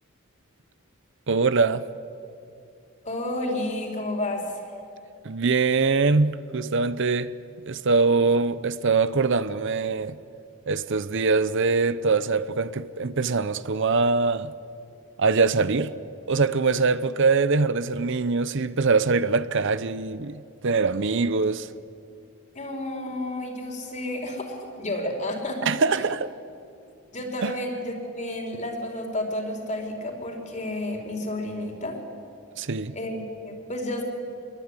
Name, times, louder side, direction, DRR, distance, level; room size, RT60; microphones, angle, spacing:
voice 1, 1.3-1.8 5.2-7.3 7.7-10.2 10.7-14.5 15.2-15.9 16.3-21.7 25.7-26.3 27.4-27.5 32.6-32.9, right 4 dB, 60° right, 0.8 m, -23 dB
voice 2, 3.0-4.5 22.5-25.8 27.1-32.0 32.9-34.0, left 1 dB, 35° left, 4.6 m, -31 dB
27.0 x 22.5 x 9.9 m
head